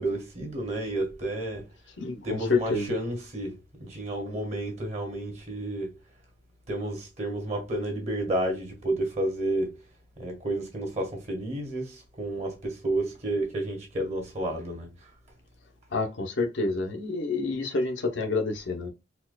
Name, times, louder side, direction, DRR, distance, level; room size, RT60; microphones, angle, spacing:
voice 1, 0.0-1.7 2.2-6.0 6.7-9.7 10.2-15.1, right 1 dB, 35° right, 1.4 m, -31 dB
voice 2, 2.0-2.9 15.9-18.9, left 3 dB, 85° left, 0.8 m, -28 dB
4.3 x 2.4 x 2.2 m
head